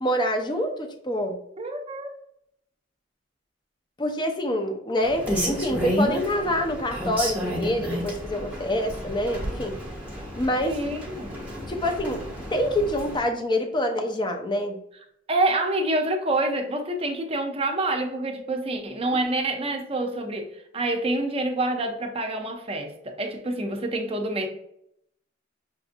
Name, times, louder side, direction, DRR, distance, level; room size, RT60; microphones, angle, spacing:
voice 1, 0.0-1.4 4.0-9.8 10.4-10.7 11.7-12.2 12.5-14.8, left 1 dB, 25° left, 4 dB, 0.5 m, -26 dB
voice 2, 1.6-2.1 10.7-11.5 15.3-24.5, right 2 dB, 30° right, 4 dB, 0.6 m, -27 dB
Rain, 5.0-13.2, equal, 5° right, 1.0 m, -31 dB
5.8 x 2.6 x 2.5 m, 0.75 s
head